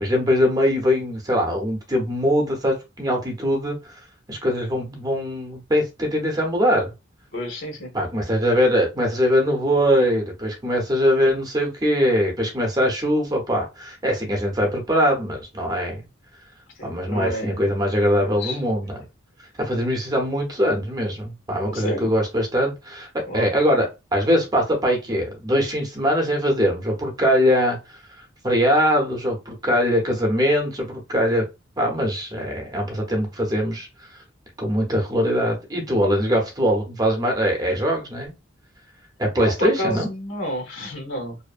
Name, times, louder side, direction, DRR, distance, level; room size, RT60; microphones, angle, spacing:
voice 1, 0.0-3.8 4.3-6.9 7.9-16.0 16.8-19.0 19.6-23.1 23.3-28.0 28.4-31.4 31.8-33.9 34.6-38.3 39.2-40.1, equal, 20° right, 0.7 m, -22 dB
voice 2, 7.3-7.9 16.8-17.8 18.2-18.6 21.6-22.1 23.3-23.5 39.4-41.4, equal, 80° left, 1.0 m, -30 dB
2.7 x 2.0 x 2.4 m
head